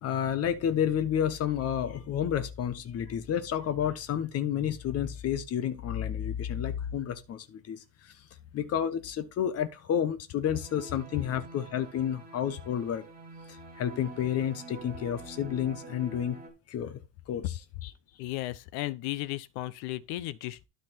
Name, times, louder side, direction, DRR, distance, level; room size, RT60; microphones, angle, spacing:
voice 1, 0.0-8.1 8.5-13.1 13.5-16.4 16.7-17.0 17.3-17.4, left 9 dB, 35° left, 1.1 m, -30 dB
sound 1, 10.4-16.5, right 2 dB, 20° right, 2.8 m, -46 dB
voice 2, 18.2-20.6, left 16 dB, 55° left, 0.8 m, -35 dB
12.0 x 4.2 x 4.3 m
cardioid pair, 155°, 45 cm